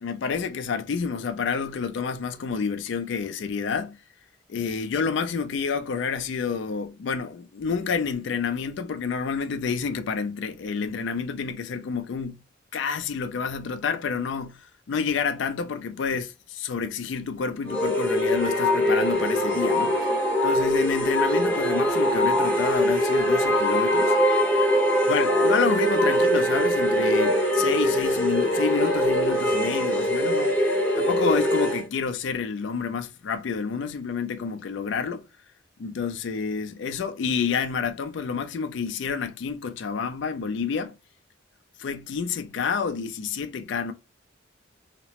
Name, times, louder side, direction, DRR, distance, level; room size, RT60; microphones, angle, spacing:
voice 1, 0.0-4.0 4.5-12.4 12.7-19.9 20.4-24.2 25.1-30.5 31.0-35.2 35.8-40.9 41.8-43.9, left 5 dB, 65° left, 0.4 m, -29 dB
sound 1, 17.7-31.9, equal, 5° left, 0.8 m, -22 dB
2.8 x 2.0 x 2.8 m
head